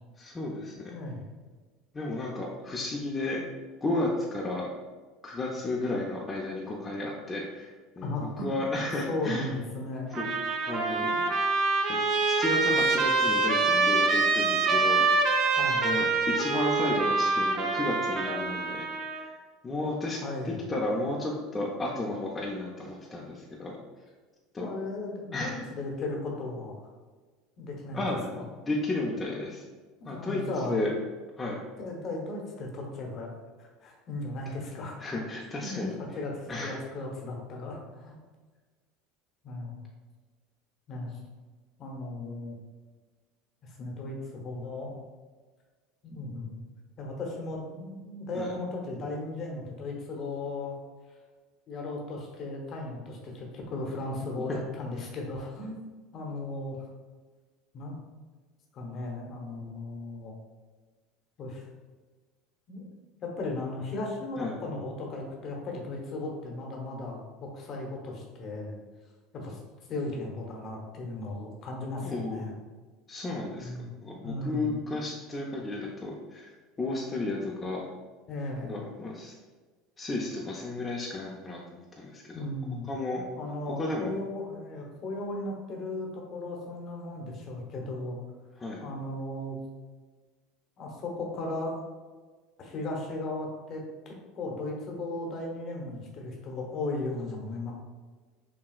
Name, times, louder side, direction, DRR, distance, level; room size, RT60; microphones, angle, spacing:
voice 1, 0.2-0.9 1.9-3.4 3.8-4.7 5.2-8.1 8.4-9.5 10.2-10.3 10.6-11.3 11.9-15.1 15.4-15.6 15.8-19.3 19.6-23.8 24.5-24.7 25.3-25.7 27.9-29.6 30.0-30.9 31.4-31.6 34.5-34.6 35.0-35.9 36.5-36.8 48.3-48.5 54.5-54.6 64.4-64.6 72.0-72.5 73.1-73.7 74.0-76.5 76.8-77.8 78.6-79.3 80.0-82.5 82.8-83.2 83.8-84.1 88.6-88.8, left 2 dB, 20° left, -3 dB, 0.6 m, -33 dB
voice 2, 0.9-1.2 8.0-8.6 9.1-10.1 15.6-15.9 20.2-20.6 24.6-26.9 27.6-28.0 28.3-28.4 30.0-30.8 31.8-33.3 33.6-35.0 35.6-35.9 36.1-38.2 39.4-39.8 40.9-41.2 41.8-42.5 43.6-45.0 46.0-46.6 47.0-50.8 51.7-55.8 56.1-56.9 57.7-58.0 58.7-60.3 61.4-61.7 62.7-62.9 63.2-68.8 69.3-69.6 69.9-72.5 73.6-73.9 74.2-74.7 78.3-78.8 82.3-82.9 83.4-88.2 88.8-89.6 90.8-91.8 92.6-97.7, left 2 dB, 45° left, 0 dB, 1.0 m, -36 dB
Trumpet, 10.1-19.3, right 3 dB, 50° right, 0.6 m, -25 dB
5.9 x 2.2 x 2.4 m, 1.4 s
supercardioid pair, 100°, 0 cm